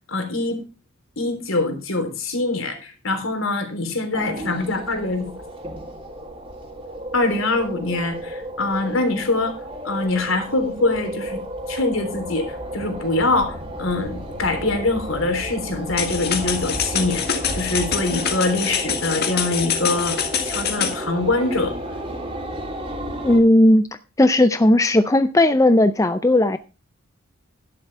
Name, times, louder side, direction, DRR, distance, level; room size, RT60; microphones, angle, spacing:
voice 1, 0.1-0.6 1.2-5.3 7.1-9.6 9.8-11.4 11.7-21.7, left 2 dB, 65° left, 6 dB, 3.5 m, -24 dB
sound 1, 4.1-23.4, right 1 dB, 25° right, 3.1 m, -32 dB
sound 2, 16.0-21.0, left 8 dB, 50° left, 1.8 m, -26 dB
voice 2, 23.2-23.9 24.2-26.6, left 1 dB, 15° left, 10 dB, 0.5 m, -16 dB
11.5 x 11.5 x 3.3 m, 0.31 s
head